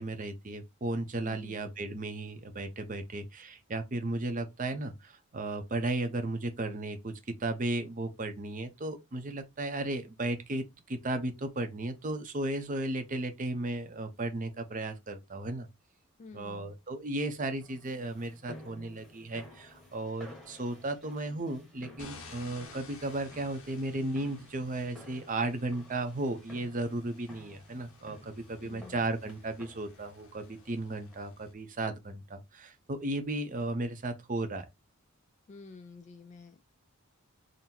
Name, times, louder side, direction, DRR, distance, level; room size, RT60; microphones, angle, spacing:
voice 1, 0.0-15.7 16.3-34.6, right 2 dB, 35° right, 0.6 m, -35 dB
voice 2, 1.2-1.6 16.2-16.8 28.6-29.1 35.5-36.7, left 3 dB, 35° left, 0.3 m, -50 dB
sound 1, 17.6-31.5, left 1 dB, ahead, 1.1 m, -54 dB
sound 2, 22.0-31.5, left 4 dB, 70° left, 0.9 m, -54 dB
3.8 x 2.1 x 4.3 m
head